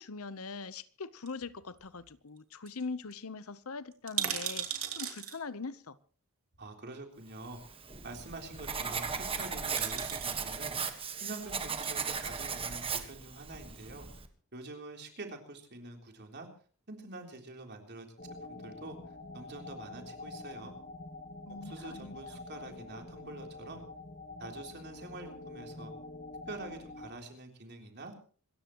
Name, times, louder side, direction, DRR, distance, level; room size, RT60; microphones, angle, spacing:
voice 1, 0.0-6.0 21.4-22.2, left 4 dB, 80° left, 0.9 m, -42 dB
sound 1, 1.3-2.1 2.4-2.5 2.7-2.8 3.1-3.2 3.9-5.4 6.5-6.6 9.2-9.4 9.8-10.4 11.6-11.9 12.6-13.3 13.5-13.6, right 10 dB, 75° right, 3.1 m, -37 dB
voice 2, 6.6-10.8 11.2-14.1 14.5-16.5 16.9-18.1 18.5-19.0 19.3-20.7 21.6-23.8 24.4-25.9 26.5-28.1, right 2 dB, 50° right, 3.5 m, -46 dB
Writing, 7.5-14.3, right 6 dB, 25° right, 1.5 m, -37 dB
sound 2, 18.2-27.1, left 2 dB, 40° left, 1.2 m, -46 dB
26.5 x 14.0 x 3.1 m
head